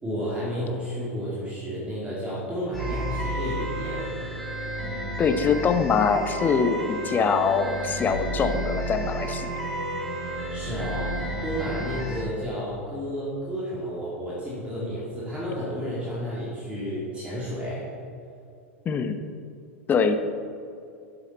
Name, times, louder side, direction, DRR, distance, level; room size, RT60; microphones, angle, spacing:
voice 1, 0.0-4.1 10.5-17.9, equal, 15° right, -7 dB, 2.5 m, -32 dB
sound 1, 2.7-12.2, equal, 5° left, 2.5 m, -31 dB
voice 2, 5.2-9.5 18.8-19.2 19.9-20.2, left 5 dB, 25° left, 8 dB, 0.8 m, -23 dB
9.9 x 8.1 x 4.2 m, 2.5 s
figure-of-eight pair, 90°, 7 cm